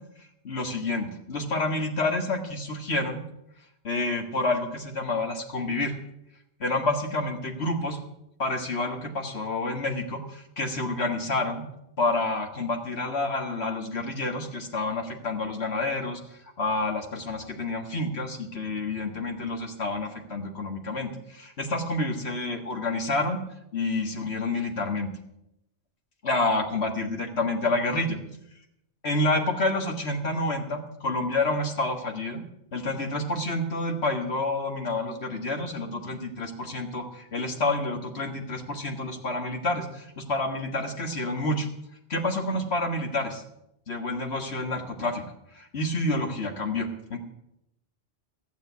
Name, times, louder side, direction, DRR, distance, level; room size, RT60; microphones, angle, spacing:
voice 1, 0.4-3.2 3.8-5.9 6.6-8.0 8.4-11.6 12.0-16.2 16.6-23.4 23.7-25.1 26.2-28.2 29.0-32.4 32.7-41.7 42.1-43.4 43.9-45.2 45.5-47.2, left 2 dB, 65° left, 3 dB, 1.8 m, -28 dB
15.5 x 7.6 x 8.2 m, 0.83 s
omnidirectional pair, 1.2 m